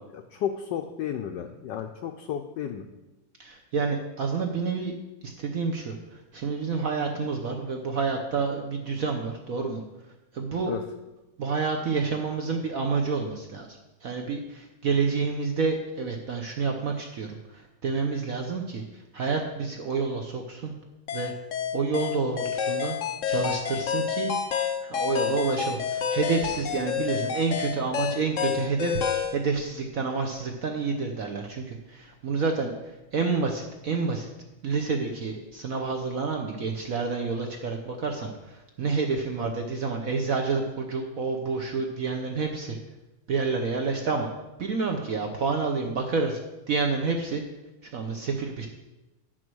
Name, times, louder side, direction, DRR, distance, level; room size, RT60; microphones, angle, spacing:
voice 1, 0.0-2.9 10.6-10.8 39.4-39.5, left 9 dB, 70° left, 5 dB, 1.1 m, -33 dB
voice 2, 3.4-4.9 5.2-9.8 10.3-10.7 11.4-13.7 14.0-20.7 21.1-21.3 21.7-23.0 23.3-24.3 24.8-34.3 34.6-42.8 43.3-44.3 44.6-46.4 46.7-47.4 47.8-48.7, right 4 dB, 60° right, 3 dB, 0.9 m, -29 dB
sound 1, 21.1-29.4, left 7 dB, 90° left, 0.6 m, -29 dB
9.2 x 6.2 x 6.2 m, 1.0 s
omnidirectional pair, 2.4 m